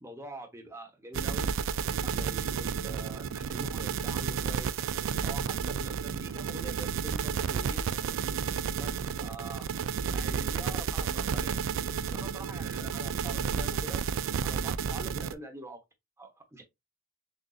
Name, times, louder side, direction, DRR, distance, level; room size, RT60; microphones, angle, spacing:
voice 1, 0.0-1.5 2.0-4.8 5.2-7.9 8.8-9.7 10.0-11.6 12.1-14.0 14.4-15.8 16.2-16.6, right 2 dB, 10° right, 0.9 m, -45 dB
sound 1, 1.1-15.3, right 6 dB, 60° right, 0.3 m, -31 dB
6.3 x 2.7 x 2.4 m
head